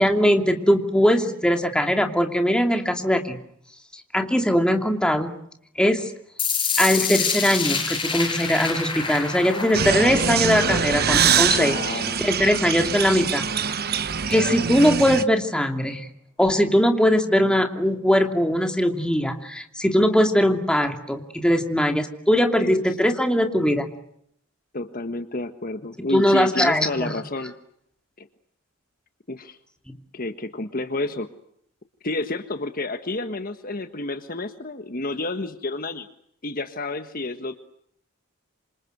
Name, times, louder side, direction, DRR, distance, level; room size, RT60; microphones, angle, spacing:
voice 1, 0.0-3.4 4.1-5.3 5.8-6.1 6.8-11.8 12.2-13.4 14.3-16.1 16.4-23.9 26.0-27.1, equal, 5° left, 5 dB, 2.7 m, -20 dB
sound 1, 6.4-12.4, left 5 dB, 25° left, 6.8 m, -28 dB
sound 2, 9.7-15.2, right 6 dB, 45° right, 1.1 m, -23 dB
voice 2, 11.6-12.2 22.6-23.2 24.7-27.5 28.2-28.3 29.3-29.6 30.1-31.3 32.0-36.1 36.4-37.6, left 2 dB, 40° left, 9 dB, 1.5 m, -30 dB
27.5 x 27.0 x 8.0 m, 0.70 s
head